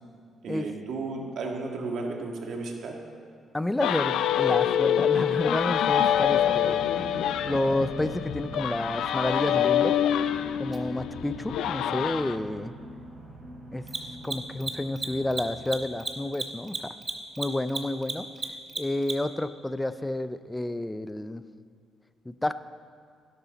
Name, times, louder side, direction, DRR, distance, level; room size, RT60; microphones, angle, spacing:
voice 1, 0.4-2.9, right 3 dB, 70° right, 1 dB, 1.7 m, -33 dB
voice 2, 3.5-6.8 7.4-10.0 10.6-12.7 13.7-13.8 14.2-16.9 17.4-18.3 18.8-21.4 22.3-22.5, left 1 dB, 10° left, 13 dB, 0.4 m, -30 dB
sound 1, 3.8-12.4, left 10 dB, 80° left, 0.4 m, -26 dB
sound 2, 5.9-15.8, right 1 dB, 50° right, 3.1 m, -44 dB
Mechanisms, 10.7-10.8 13.8-19.4, right 3 dB, 30° right, 1.0 m, -33 dB
12.0 x 11.5 x 4.0 m, 2.2 s
cardioid pair, 90°, 0 cm